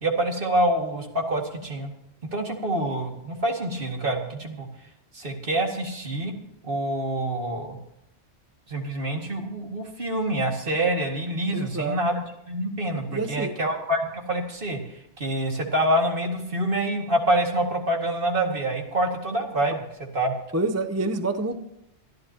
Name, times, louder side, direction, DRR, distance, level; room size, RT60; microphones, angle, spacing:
voice 1, 0.0-1.9 2.3-4.7 5.1-6.3 6.6-7.8 8.7-14.8 15.2-19.8 20.1-20.4, right 1 dB, 55° right, 2 dB, 2.3 m, -26 dB
voice 2, 11.5-12.0 13.1-13.6 20.5-21.6, right 2 dB, 15° right, 7 dB, 0.6 m, -27 dB
24.5 x 11.5 x 2.9 m, 0.81 s
omnidirectional pair, 1.1 m